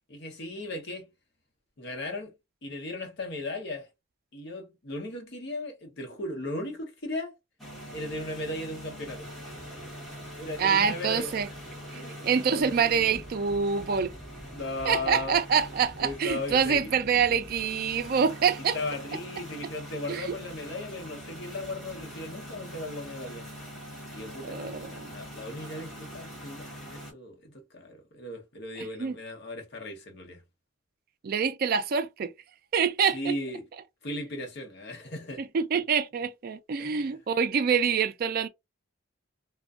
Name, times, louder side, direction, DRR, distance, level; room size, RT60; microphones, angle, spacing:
voice 1, 0.1-1.1 1.8-2.3 2.6-3.9 4.3-7.4 7.9-9.3 10.4-11.3 11.9-12.2 12.5-13.1 14.5-15.4 16.0-16.9 18.7-23.5 24.1-30.4 33.1-33.7 34.0-35.4 36.8-37.0, left 2 dB, 55° left, 0.8 m, -37 dB
sound 1, 7.6-27.1, equal, ahead, 0.9 m, -43 dB
voice 2, 10.6-11.5 11.9-14.1 14.8-18.8 19.1-19.2 20.1-20.4 24.4-25.1 28.8-29.2 31.2-32.3 32.7-33.3 35.4-38.5, right 6 dB, 45° right, 0.3 m, -26 dB
2.5 x 2.2 x 2.3 m
head